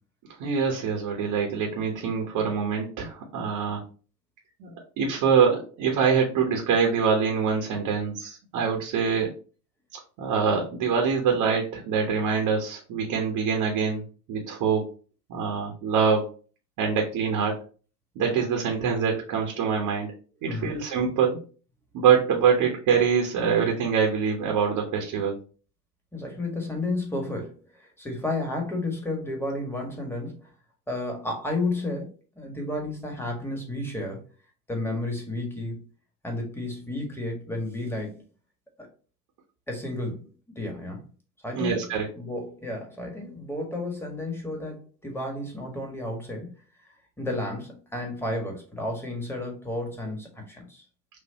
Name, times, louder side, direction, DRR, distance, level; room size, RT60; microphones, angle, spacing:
voice 1, 0.4-3.8 4.6-4.7 5.0-9.3 9.9-14.0 14.3-14.8 15.3-16.3 16.8-17.6 18.1-20.1 20.4-21.4 21.9-25.4 41.5-42.0, right 6 dB, 45° right, 1.2 m, -24 dB
voice 2, 20.4-20.8 26.1-30.5 30.9-34.2 34.7-35.8 36.2-38.2 39.7-40.3 40.5-41.0 41.4-41.9 42.1-46.5 46.8-50.8, left 2 dB, 5° left, 1.6 m, -32 dB
6.3 x 2.6 x 2.9 m
figure-of-eight pair, 70°, 46 cm